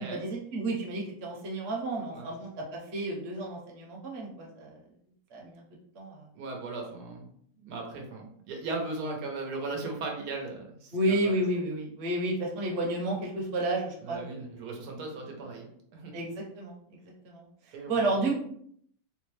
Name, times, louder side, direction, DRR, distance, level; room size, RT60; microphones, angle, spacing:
voice 1, 0.0-4.8 5.3-5.6 5.9-6.3 10.9-14.5 16.1-16.7 17.0-18.4, right 1 dB, 50° right, -2 dB, 0.9 m, -31 dB
voice 2, 6.3-7.3 7.6-11.4 14.0-16.1 17.7-18.1, right 3 dB, 90° right, 1 dB, 1.3 m, -37 dB
3.8 x 2.1 x 3.0 m, 0.65 s
omnidirectional pair, 1.7 m